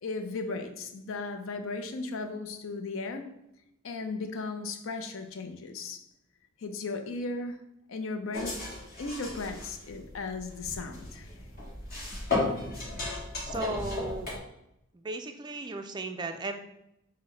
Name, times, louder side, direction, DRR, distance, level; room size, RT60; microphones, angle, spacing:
voice 1, 0.0-3.3 3.8-6.0 6.6-7.6 7.9-8.6 9.0-11.3, left 3 dB, 65° left, 6 dB, 0.5 m, -36 dB
sound 1, 8.3-14.4, left 3 dB, 45° left, 1.3 m, -35 dB
voice 2, 13.4-14.3 14.9-16.5, right 3 dB, 20° right, 6 dB, 0.3 m, -36 dB
5.9 x 2.1 x 3.7 m, 0.82 s
head